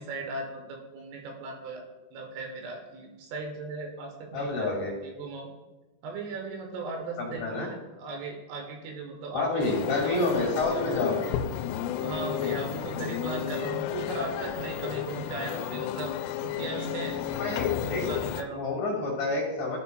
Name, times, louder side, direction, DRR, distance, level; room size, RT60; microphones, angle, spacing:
voice 1, 0.0-1.8 2.1-4.7 5.0-5.5 6.0-9.6 10.0-10.2 10.7-10.8 12.0-16.1 16.4-18.6, right 3 dB, 85° right, 2 dB, 3.6 m, -37 dB
voice 2, 4.3-4.9 7.2-7.7 9.3-11.3 17.4-18.0 18.5-19.8, left 2 dB, 50° left, -3 dB, 2.5 m, -28 dB
sound 1, 9.6-18.4, left 11 dB, 90° left, 3.1 m, -32 dB
16.5 x 5.6 x 2.3 m, 1.2 s
omnidirectional pair, 5.6 m